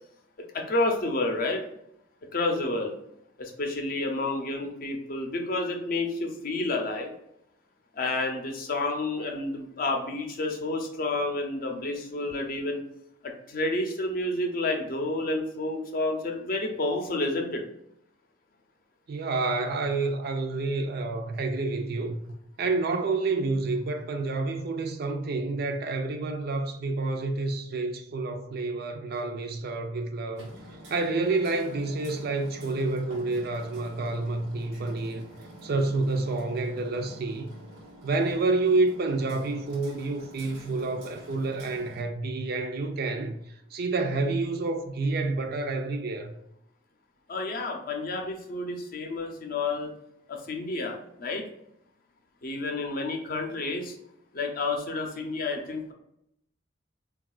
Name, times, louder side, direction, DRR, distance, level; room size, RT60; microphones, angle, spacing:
voice 1, 0.5-1.6 2.3-2.9 3.4-7.1 8.0-12.8 13.5-17.6 47.3-49.9 50.3-51.4 52.4-53.9 54.3-55.9, left 2 dB, 50° left, 0.5 m, -30 dB
voice 2, 19.1-22.2 22.6-30.5 30.9-35.3 35.6-37.6 38.0-43.4 43.7-46.3, right 3 dB, 55° right, 0.4 m, -29 dB
Hammer, 30.4-42.0, equal, 85° right, 1.0 m, -47 dB
3.5 x 2.3 x 2.3 m
head